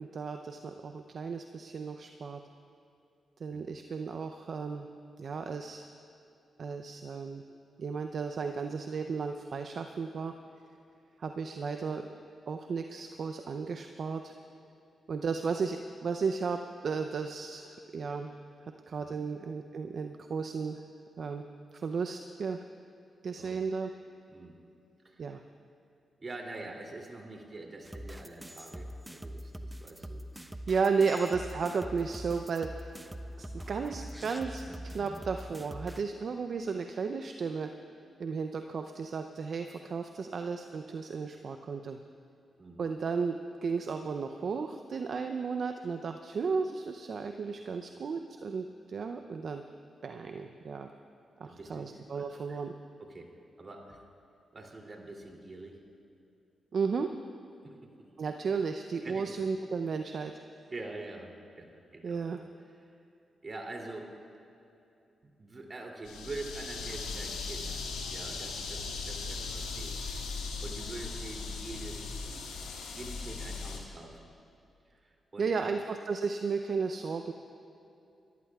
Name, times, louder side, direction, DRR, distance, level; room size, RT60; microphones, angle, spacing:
voice 1, 0.0-2.4 3.4-4.9 5.2-5.9 6.6-7.4 7.8-10.3 11.2-12.1 12.5-14.3 15.1-18.3 18.9-20.8 21.2-21.4 21.7-22.6 23.2-23.9 25.2-25.4 30.3-32.9 33.4-37.7 38.2-42.0 42.8-43.4 43.6-49.6 50.0-50.9 51.4-52.7 56.7-57.1 58.2-60.3 62.0-62.5 75.4-77.3, right 5 dB, 65° right, 6 dB, 0.6 m, -34 dB
voice 2, 23.4-23.9 24.3-24.5 25.0-25.4 26.2-30.2 42.6-42.9 51.4-52.6 53.0-53.3 53.6-54.0 54.5-55.8 57.6-57.9 59.0-59.3 60.7-61.3 61.6-62.2 62.7-62.8 63.4-64.1 65.2-70.0 70.6-72.4 72.9-74.3 74.9-75.8, right 2 dB, 45° right, 0 dB, 2.8 m, -45 dB
sound 1, 27.8-36.0, equal, 10° right, 0.9 m, -43 dB
sound 2, 66.1-73.8, left 4 dB, 90° left, 1.5 m, -38 dB
26.0 x 14.5 x 2.4 m, 2.7 s
supercardioid pair, 45°, 0 cm